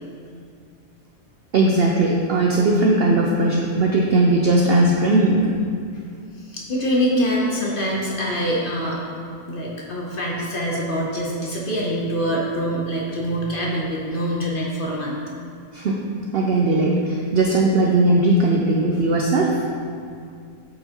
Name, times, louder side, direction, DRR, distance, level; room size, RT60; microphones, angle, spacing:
voice 1, 1.5-5.6 15.7-16.0 16.3-19.6, right 2 dB, 70° right, -1 dB, 0.6 m, -18 dB
voice 2, 6.4-9.0 9.5-15.1, equal, 45° left, -3 dB, 0.8 m, -24 dB
8.3 x 4.5 x 2.9 m, 2.2 s
omnidirectional pair, 1.5 m